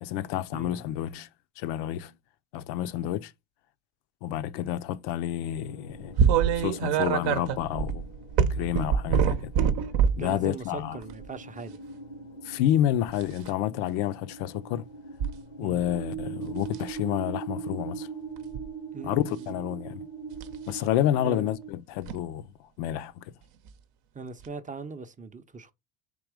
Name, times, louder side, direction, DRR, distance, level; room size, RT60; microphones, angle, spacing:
voice 1, 0.0-1.3 1.6-2.1 2.5-3.3 4.2-6.2 6.6-8.1 8.5-9.5 10.2-11.0 12.4-14.9 15.6-18.1 19.0-20.0 20.7-22.5 22.8-23.2, left 12 dB, 70° left, 0.6 m, -29 dB
voice 2, 0.5-0.9 10.2-11.8 15.6-15.8 18.9-19.6 21.2-21.5 24.1-25.7, right 4 dB, 20° right, 0.5 m, -40 dB
sound 1, 5.4-21.7, right 5 dB, 90° left, 1.4 m, -42 dB
sound 2, 6.2-10.3 11.0-11.3 13.1-13.5 15.2-15.3 15.8-16.2 16.7-16.9 18.4-18.7 20.4-20.6 22.1-22.2 23.7-23.8 24.4-24.5, right 7 dB, 65° right, 0.7 m, -25 dB
3.7 x 2.9 x 4.7 m
supercardioid pair, 80°, 42 cm